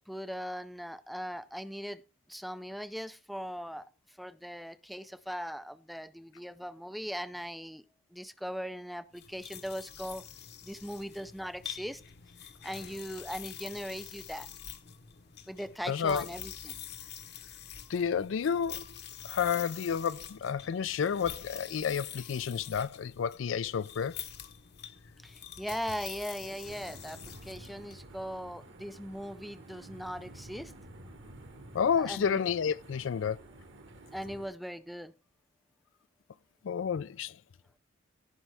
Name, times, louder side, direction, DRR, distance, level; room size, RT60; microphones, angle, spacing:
voice 1, 0.0-2.0 2.3-3.9 4.2-7.8 8.1-10.2 10.6-12.0 12.4-14.5 15.5-16.8 25.2-30.7 32.0-32.4 34.1-35.1, equal, ahead, 0.4 m, -39 dB
sound 1, 9.1-28.0, left 9 dB, 55° left, 1.0 m, -46 dB
voice 2, 15.9-16.3 17.9-18.8 19.2-24.1 31.7-33.4 36.6-37.3, left 7 dB, 75° left, 0.4 m, -30 dB
sound 2, 26.6-34.5, right 1 dB, 65° right, 1.7 m, -51 dB
16.0 x 5.4 x 3.4 m
head